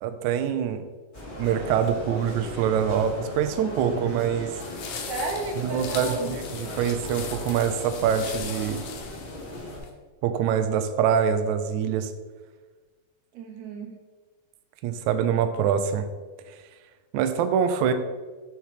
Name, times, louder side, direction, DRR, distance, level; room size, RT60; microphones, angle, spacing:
voice 1, 0.0-0.9 1.4-4.5 5.6-8.9 10.2-12.1 14.8-16.1 17.1-17.9, right 8 dB, 80° right, 8 dB, 1.7 m, -25 dB
sound 1, 1.1-9.8, left 1 dB, 15° left, 2.2 m, -37 dB
sound 2, 4.6-9.9, left 6 dB, 75° left, 2.5 m, -39 dB
voice 2, 5.1-6.3 13.3-13.9, right 3 dB, 65° right, 1 dB, 2.2 m, -33 dB
6.6 x 5.9 x 4.8 m, 1.4 s
omnidirectional pair, 3.9 m